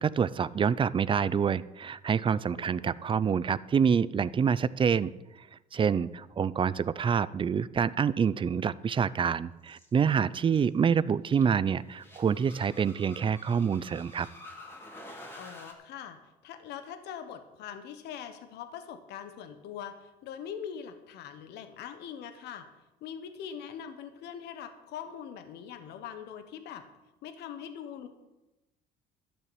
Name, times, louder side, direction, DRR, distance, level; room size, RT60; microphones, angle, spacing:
voice 1, 0.0-5.1 5.4-5.5 5.7-14.3, right 7 dB, 30° right, 18 dB, 0.5 m, -27 dB
voice 2, 2.5-3.0 15.4-22.7 23.0-26.8 27.2-28.1, left 8 dB, 80° left, 8 dB, 1.3 m, -42 dB
sound 1, 9.7-9.9 10.5-10.6 11.3-11.5 11.9-15.7, left 1 dB, 15° left, 2.7 m, -49 dB
12.0 x 6.8 x 8.8 m, 1.0 s
cardioid pair, 110°, 17 cm